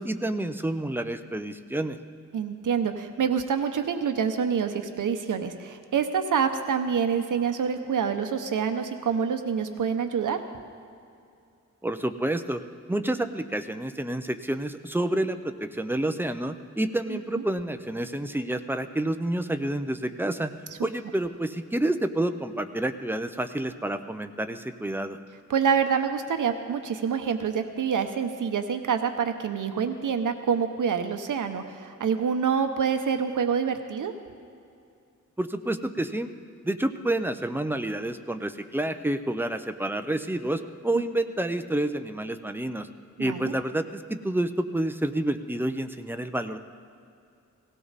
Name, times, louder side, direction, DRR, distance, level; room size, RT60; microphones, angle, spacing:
voice 1, 0.0-2.0 11.8-12.6 12.9-20.5 20.8-25.2 35.4-36.3 36.6-42.9 43.2-46.6, right 1 dB, 5° right, 8 dB, 0.5 m, -29 dB
voice 2, 2.3-10.4 17.1-17.2 25.5-34.1 43.2-43.5, right 7 dB, 75° right, 7 dB, 0.9 m, -26 dB
18.0 x 16.5 x 4.1 m, 2.5 s
wide cardioid pair, 165°, 31 cm